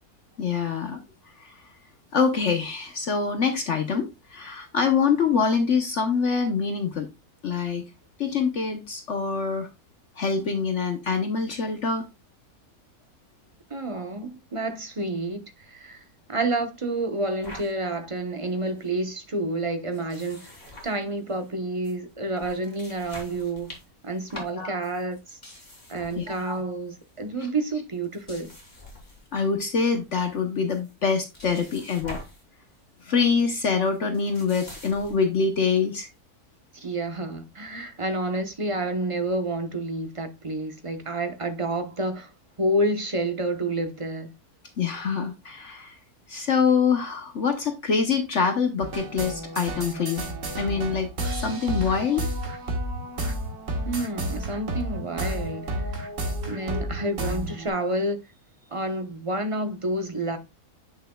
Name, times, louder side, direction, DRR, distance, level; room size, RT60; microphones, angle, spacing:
voice 1, 0.4-1.0 1.4-1.6 2.1-7.1 7.4-7.8 8.2-9.7 10.2-12.1 24.5-24.7 26.1-26.6 29.3-32.2 33.0-36.1 44.8-45.9 46.3-50.2 50.6-52.3, left 5 dB, 55° left, 1.2 m, -25 dB
voice 2, 13.7-16.0 16.3-20.5 20.8-23.8 24.0-25.4 25.9-28.5 36.7-42.3 42.6-44.3 53.8-55.9 56.5-58.2 58.7-60.4, right 2 dB, 25° right, 0.9 m, -29 dB
sound 1, 17.4-17.7 18.2-18.3 18.5-18.9 19.9-21.5 21.8-22.0 22.3-26.6 26.9-27.2 27.9-29.6 29.9-30.4 30.7-32.5 32.8-33.0 33.9-35.3, left 1 dB, 25° left, 3.1 m, -45 dB
sound 2, 48.8-57.7, right 1 dB, 55° right, 1.8 m, -31 dB
8.5 x 6.7 x 2.3 m
omnidirectional pair, 1.6 m